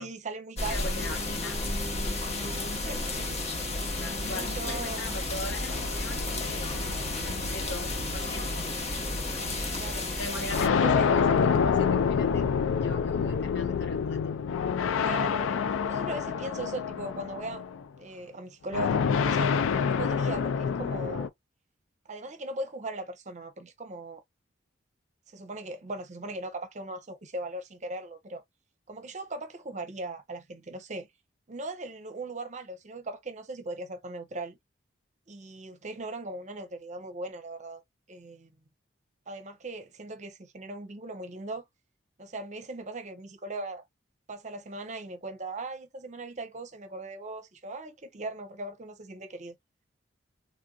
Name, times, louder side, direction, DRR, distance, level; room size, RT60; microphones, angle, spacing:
voice 1, 0.0-0.9 2.8-3.4 4.3-5.2 9.8-10.1 10.8-11.1 14.9-17.6 18.0-19.5 19.9-21.3 22.1-24.2 25.3-28.4 28.9-31.1 31.5-34.6 35.3-37.8 38.1-38.5 39.3-41.6 42.2-43.8 44.3-49.5, right 2 dB, 40° right, 0.7 m, -39 dB
sound 1, 0.6-10.7, left 2 dB, 35° left, 0.9 m, -32 dB
voice 2, 0.7-1.9 4.0-6.9 7.5-8.6 10.2-12.5 12.8-14.3, left 2 dB, 60° left, 0.8 m, -40 dB
sound 2, 5.7-8.4 9.3-9.4 10.5-17.8 18.7-21.3, left 6 dB, 85° left, 0.4 m, -27 dB
3.2 x 2.6 x 2.3 m
head